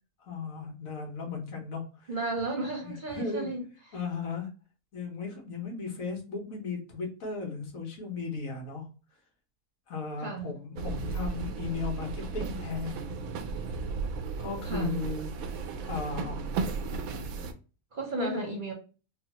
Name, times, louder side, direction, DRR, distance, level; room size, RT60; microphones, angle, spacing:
voice 1, 0.2-2.1 2.8-3.5 3.9-4.5 4.9-8.9 9.9-13.1 14.4-15.3 15.8-16.7 18.2-18.4, left 4 dB, 75° left, 1.5 m, -36 dB
voice 2, 2.1-3.6 10.2-10.5 14.6-15.0 17.9-18.7, right 2 dB, 45° right, 0.8 m, -33 dB
sound 1, 10.8-17.5, right 4 dB, 85° right, 1.0 m, -35 dB
4.0 x 2.3 x 2.8 m
omnidirectional pair, 1.5 m